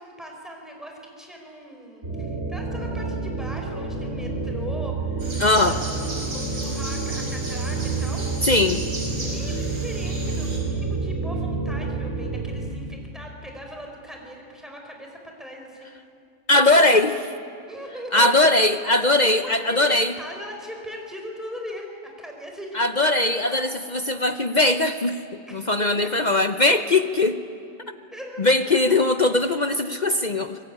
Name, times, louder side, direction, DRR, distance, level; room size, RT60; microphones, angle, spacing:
voice 1, 0.0-5.9 6.3-8.3 9.2-15.9 17.7-18.3 19.2-23.6 25.5-26.3 28.1-29.0, equal, ahead, 1 dB, 4.8 m, -39 dB
sound 1, 2.0-12.7, right 3 dB, 35° right, 5.5 m, -29 dB
sound 2, 5.2-10.6, right 1 dB, 65° right, 5.9 m, -36 dB
voice 2, 5.4-5.8 8.5-8.8 16.5-17.3 18.1-20.1 22.7-25.2 25.5-27.4 28.4-30.6, left 2 dB, 50° left, 9 dB, 0.5 m, -20 dB
25.0 x 21.5 x 9.8 m, 2.7 s
omnidirectional pair, 1.9 m